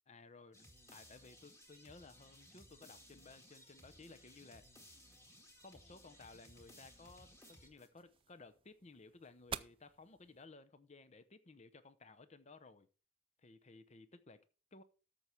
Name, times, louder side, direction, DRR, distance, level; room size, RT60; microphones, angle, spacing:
voice 1, 0.1-4.7 5.6-12.9 13.4-14.8, left 3 dB, 35° left, 12 dB, 0.7 m, -58 dB
sound 1, 0.5-8.2, equal, 15° left, 1.9 m, -61 dB
sound 2, 4.5-10.5, right 7 dB, 30° right, 0.4 m, -53 dB
13.5 x 5.6 x 4.5 m, 0.37 s
head